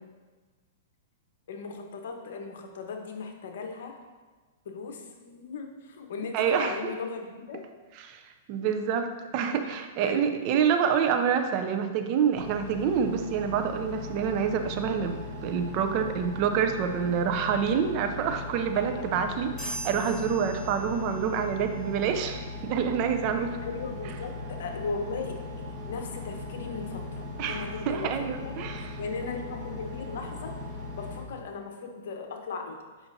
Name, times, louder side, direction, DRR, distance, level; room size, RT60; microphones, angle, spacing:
voice 1, 1.5-4.0 4.6-7.6 9.4-9.7 10.0-10.5 18.7-19.2 23.6-28.6 29.0-30.5 30.9-32.8, left 4 dB, 65° left, 3 dB, 1.0 m, -37 dB
voice 2, 6.3-6.9 8.0-8.2 8.5-23.5 27.4-28.9, right 7 dB, 35° right, 7 dB, 0.5 m, -27 dB
Engine, 12.3-31.2, left 2 dB, 10° right, 1.3 m, -39 dB
sound 1, 19.6-21.4, right 1 dB, 10° left, 1.7 m, -40 dB
7.0 x 5.7 x 2.7 m, 1.3 s
hypercardioid pair, 155°, 0 cm